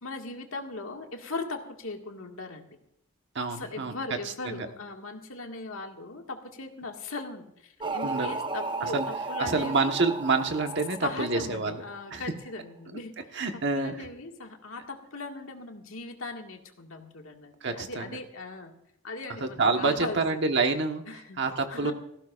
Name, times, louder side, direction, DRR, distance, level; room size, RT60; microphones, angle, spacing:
voice 1, 0.0-2.7 3.5-10.0 11.0-13.1 13.5-18.7 19.0-20.6 21.1-21.4 21.7-21.9, left 3 dB, 75° left, 3 dB, 1.9 m, -39 dB
voice 2, 3.3-3.9 4.5-4.7 8.0-8.3 8.8-9.1 9.4-11.8 12.1-12.2 13.3-14.1 17.6-18.2 19.4-21.0 21.4-21.9, right 3 dB, 55° right, 5 dB, 1.3 m, -27 dB
sound 1, 7.8-12.0, right 3 dB, 25° right, 0.6 m, -34 dB
18.0 x 15.5 x 2.5 m, 0.78 s
head